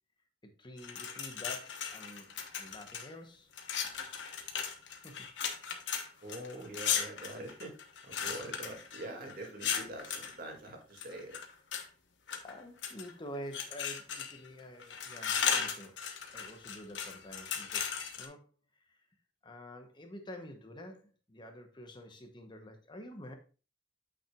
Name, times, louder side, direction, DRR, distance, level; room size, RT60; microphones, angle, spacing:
voice 1, 0.4-3.5 5.0-5.3 12.4-16.0 16.3-18.5 18.8-19.1 19.4-23.4, equal, 25° left, 5 dB, 0.9 m, -48 dB
sound 1, 0.8-3.1 3.5-10.4 11.0-11.8 12.3-13.1 13.5-14.5 14.8-18.3, left 7 dB, 85° left, 1.1 m, -36 dB
voice 2, 6.2-7.7 8.0-11.4, right 1 dB, 55° right, 1 dB, 2.1 m, -44 dB
8.6 x 5.8 x 2.3 m, 0.34 s
head